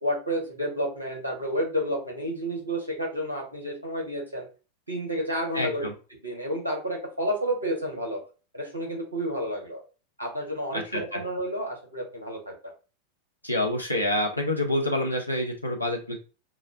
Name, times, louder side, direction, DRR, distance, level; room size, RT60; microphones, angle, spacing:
voice 1, 0.0-4.5 4.9-5.9 6.2-8.2 8.5-9.8 10.2-12.7, equal, 80° right, -1 dB, 1.3 m, -30 dB
voice 2, 5.5-5.9 10.7-11.0 13.4-16.2, left 1 dB, 90° left, 1 dB, 0.8 m, -27 dB
5.4 x 2.1 x 2.6 m, 0.34 s
figure-of-eight pair, 90°, 0 cm